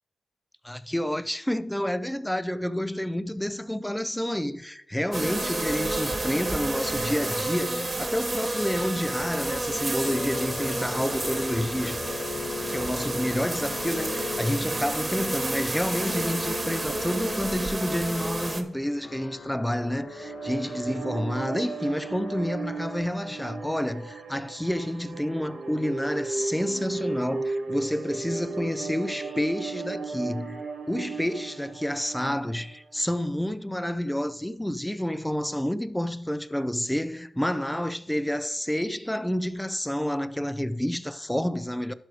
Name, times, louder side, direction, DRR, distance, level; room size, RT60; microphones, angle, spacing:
voice 1, 0.6-12.0 12.7-41.9, equal, 5° left, 0.6 m, -29 dB
sound 1, 5.1-18.6, right 2 dB, 30° right, 1.5 m, -30 dB
sound 2, 7.9-23.5, left 4 dB, 75° left, 1.0 m, -41 dB
sound 3, 19.7-33.0, right 3 dB, 90° right, 1.6 m, -35 dB
11.5 x 4.7 x 4.8 m
cardioid pair, 60°, 0 cm